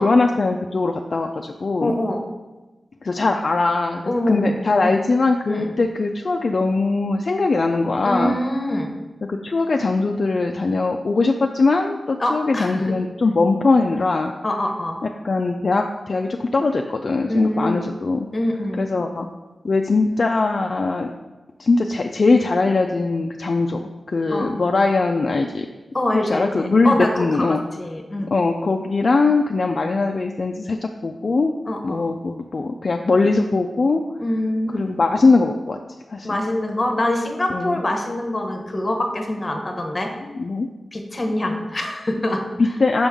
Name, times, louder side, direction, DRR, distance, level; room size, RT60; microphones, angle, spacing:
voice 1, 0.0-1.9 3.0-8.4 9.3-14.3 15.2-18.3 18.8-19.3 19.6-21.1 21.6-25.7 26.3-27.6 28.3-31.5 31.8-34.0 34.7-35.8 36.1-36.4 37.5-37.8 40.3-40.7 42.6-43.1, left 3 dB, 50° left, 3 dB, 0.3 m, -21 dB
voice 2, 1.8-2.2 4.0-4.9 5.5-5.7 8.0-8.9 12.2-12.9 14.4-15.0 17.3-17.8 18.3-18.9 24.3-24.6 25.9-28.3 31.7-32.1 34.2-34.9 36.2-40.1 40.9-42.7, left 1 dB, 30° left, 3 dB, 0.8 m, -24 dB
5.4 x 5.1 x 3.6 m, 1.2 s
wide cardioid pair, 95°, 0 cm